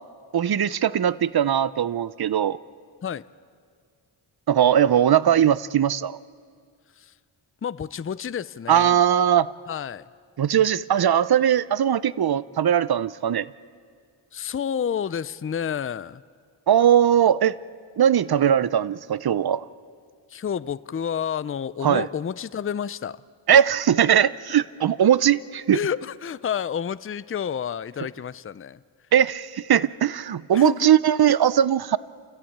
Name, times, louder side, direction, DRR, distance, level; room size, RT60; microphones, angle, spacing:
voice 1, 0.3-2.6 4.5-6.2 8.7-9.5 10.4-13.5 16.7-17.6 18.0-19.7 21.8-22.1 23.5-25.8 29.1-32.0, right 9 dB, 50° right, 18 dB, 0.6 m, -20 dB
voice 2, 7.6-9.0 9.7-10.1 14.3-16.2 20.3-23.2 25.7-28.8 30.5-30.9, left 8 dB, 25° left, 17 dB, 0.5 m, -30 dB
29.5 x 14.5 x 8.7 m, 2.1 s
cardioid pair, 65°, 50 cm